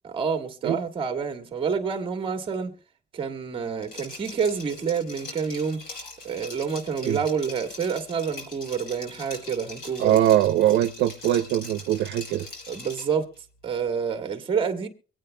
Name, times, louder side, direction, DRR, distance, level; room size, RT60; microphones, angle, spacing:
voice 1, 0.1-2.7 3.1-5.8 6.2-10.2 12.7-13.3 13.6-14.9, right 6 dB, 30° right, 1.5 m, -28 dB
Liquid, 3.8-13.2, left 2 dB, 60° left, 4.9 m, -42 dB
voice 2, 10.0-12.5, right 12 dB, 80° right, 0.7 m, -22 dB
24.0 x 9.0 x 2.2 m
cardioid pair, 155°, 18 cm